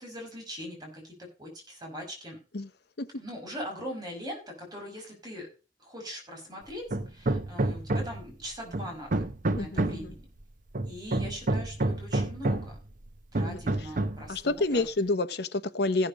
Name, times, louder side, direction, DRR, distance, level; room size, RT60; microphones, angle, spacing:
voice 1, 0.0-2.4 3.1-5.5 5.8-9.2 9.6-10.2 10.9-12.8 13.3-14.9, equal, 25° right, 5.2 m, -41 dB
Hammer, 6.9-8.3 8.7-10.1 10.7-12.8 13.3-14.3, right 2 dB, 50° right, 0.9 m, -29 dB
voice 2, 9.5-10.1 13.4-13.6 14.3-16.1, left 2 dB, 65° left, 0.9 m, -29 dB
15.0 x 6.8 x 5.1 m
head